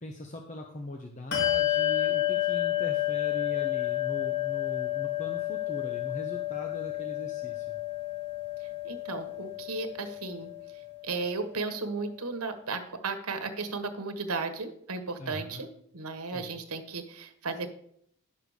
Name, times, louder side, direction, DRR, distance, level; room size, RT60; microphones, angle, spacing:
voice 1, 0.0-7.8 15.2-15.6 16.3-16.6, left 1 dB, 35° left, 2 dB, 0.9 m, -41 dB
Bell, 1.3-11.3, left 14 dB, 50° left, 2.0 m, -31 dB
voice 2, 8.8-10.5 11.0-15.7 15.9-17.7, right 3 dB, 85° right, 7 dB, 1.3 m, -35 dB
11.0 x 6.8 x 5.0 m, 0.69 s
head